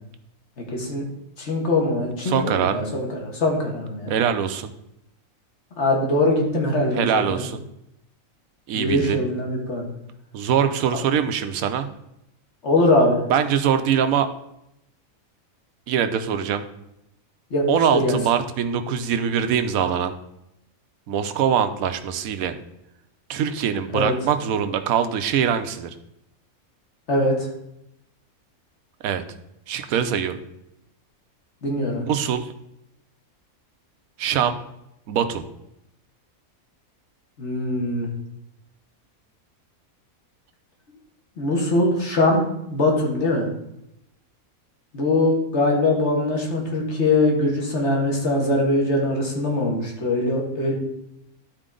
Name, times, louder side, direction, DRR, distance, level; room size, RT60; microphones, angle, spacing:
voice 1, 0.7-1.0 1.4-2.3 2.6-4.1 5.7-7.1 7.4-7.5 8.7-9.8 12.6-13.2 17.5-17.7 17.9-18.2 23.9-24.1 27.1-27.5 31.6-32.1 37.4-38.1 41.4-43.5 44.9-50.7, left 2 dB, 55° left, 0 dB, 2.0 m, -22 dB
voice 2, 2.2-2.8 4.1-4.7 7.0-7.6 8.7-9.2 10.3-11.9 13.3-14.3 15.9-16.6 17.7-20.1 21.1-22.6 23.3-25.9 29.0-29.2 29.7-30.4 32.1-32.5 34.2-34.6 35.1-35.4, right 8 dB, 80° right, 9 dB, 1.1 m, -23 dB
11.5 x 4.4 x 3.8 m, 0.80 s
omnidirectional pair, 1.5 m